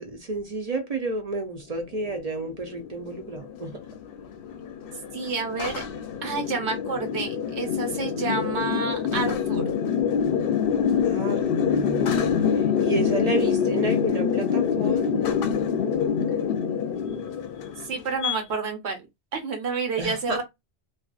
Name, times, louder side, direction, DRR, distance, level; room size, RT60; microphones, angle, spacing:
voice 1, 0.0-3.8 11.0-12.1 12.5-15.3 20.0-20.4, right 2 dB, 45° right, 0.5 m, -31 dB
sound 1, 2.0-18.4, left 7 dB, 65° left, 0.7 m, -26 dB
voice 2, 5.1-5.8 6.2-9.6 17.8-19.0 19.3-20.4, right 4 dB, 80° right, 1.1 m, -29 dB
2.4 x 2.3 x 2.3 m
omnidirectional pair, 1.1 m